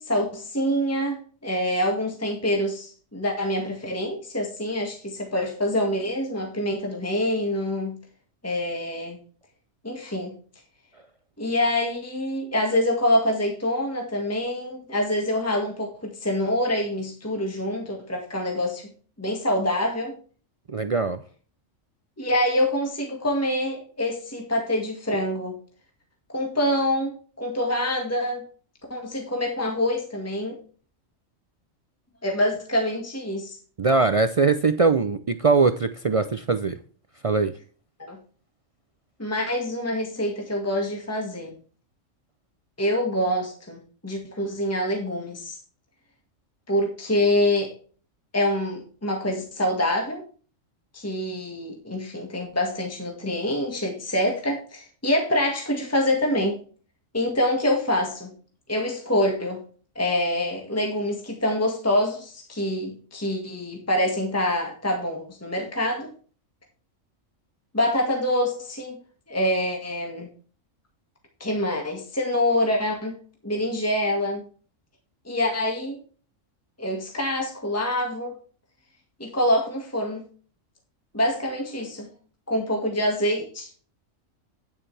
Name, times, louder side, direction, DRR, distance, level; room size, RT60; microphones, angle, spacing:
voice 1, 0.0-8.0 8.4-9.2 9.8-10.3 11.4-18.9 19.2-20.2 22.2-25.6 26.3-28.4 28.9-30.6 32.2-33.6 38.0-38.2 39.2-41.5 42.8-45.6 46.7-47.7 48.3-50.2 50.9-56.6 57.1-58.3 58.7-59.6 60.0-66.1 67.7-69.0 69.3-70.3 71.4-73.1 73.4-74.4 75.3-76.0 76.8-78.4 79.2-80.2 81.1-82.1 82.5-83.7, left 1 dB, 10° left, 1 dB, 1.8 m, -26 dB
voice 2, 20.7-21.2 33.8-36.8 37.2-37.5, right 4 dB, 65° right, 10 dB, 0.3 m, -21 dB
9.6 x 8.9 x 3.3 m, 0.40 s
omnidirectional pair, 1.4 m